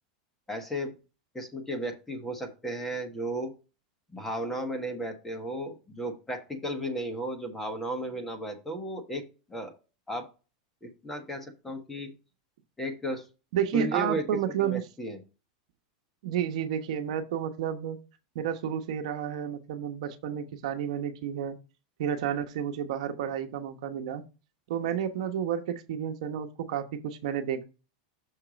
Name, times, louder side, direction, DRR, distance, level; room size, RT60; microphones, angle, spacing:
voice 1, 0.5-0.9 1.3-3.5 4.1-9.2 9.5-9.7 10.1-10.3 10.8-12.1 12.8-13.2 13.7-15.2, equal, 5° left, 4 dB, 1.3 m, -34 dB
voice 2, 13.5-14.8 16.2-18.0 18.3-21.6 22.0-24.2 24.7-27.6, right 9 dB, 65° right, 6 dB, 1.0 m, -31 dB
6.6 x 4.4 x 5.1 m, 0.31 s
supercardioid pair, 155°, 4 cm